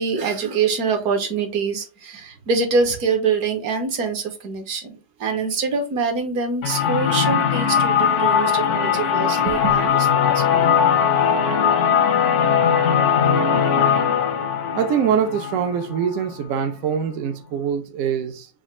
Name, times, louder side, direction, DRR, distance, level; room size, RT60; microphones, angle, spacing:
voice 1, 0.0-10.6, right 4 dB, 55° right, 1.2 m, -24 dB
sound 1, 6.6-16.3, left 7 dB, 65° left, 0.7 m, -19 dB
voice 2, 14.7-18.5, right 7 dB, 80° right, 0.7 m, -23 dB
5.0 x 2.4 x 4.2 m
omnidirectional pair, 2.1 m